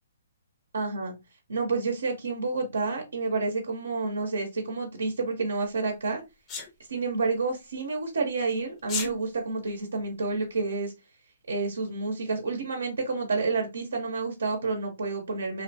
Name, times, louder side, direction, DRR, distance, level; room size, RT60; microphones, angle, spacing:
voice 1, 0.7-1.1 1.5-6.2 6.9-10.9 11.5-15.6, right 3 dB, 85° right, 2 dB, 0.7 m, -29 dB
Sneeze, 6.5-6.7 8.8-9.1, left 5 dB, 20° left, 0.5 m, -31 dB
2.8 x 2.1 x 2.7 m, 0.24 s
hypercardioid pair, 150°, 0 cm